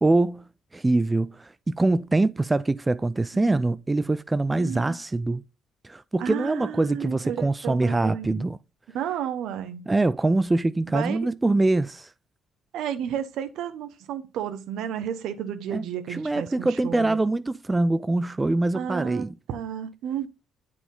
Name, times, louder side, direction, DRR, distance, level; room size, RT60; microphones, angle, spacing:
voice 1, 0.0-0.4 0.7-5.4 5.8-8.6 9.9-12.1 15.7-15.8 16.1-19.3, right 2 dB, 15° right, 0.3 m, -24 dB
voice 2, 4.5-5.0 6.2-8.5 8.9-9.8 10.9-11.2 12.7-17.2 18.7-20.3, right 9 dB, 75° right, 0.9 m, -32 dB
8.1 x 4.9 x 3.8 m
cardioid pair, 85°, 0 cm